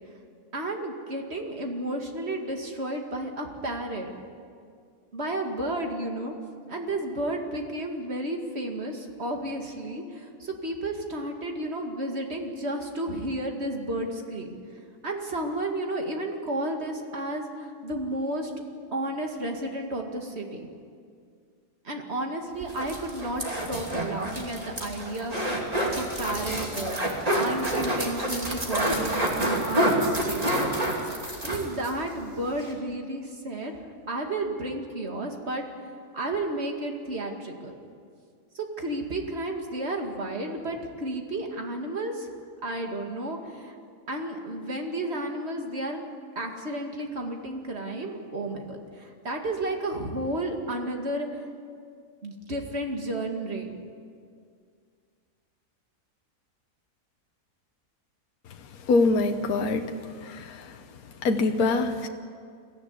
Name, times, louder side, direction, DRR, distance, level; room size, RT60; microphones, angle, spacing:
voice 1, 0.5-4.1 5.1-6.3 6.7-14.6 15.0-18.5 18.9-20.7 21.8-27.0 27.3-30.7 31.4-35.6 36.1-37.8 38.5-42.3 42.6-43.7 44.1-46.0 46.4-51.4 52.2-53.7, right 1 dB, 40° right, 2 dB, 2.5 m, -32 dB
sound 1, 22.6-32.0 32.3-32.4 32.6-32.7, right 1 dB, 25° right, 2.9 m, -28 dB
voice 2, 58.9-60.8 61.2-62.1, left 3 dB, 70° left, 5 dB, 1.4 m, -24 dB
22.5 x 14.5 x 9.8 m, 2.2 s
omnidirectional pair, 1.7 m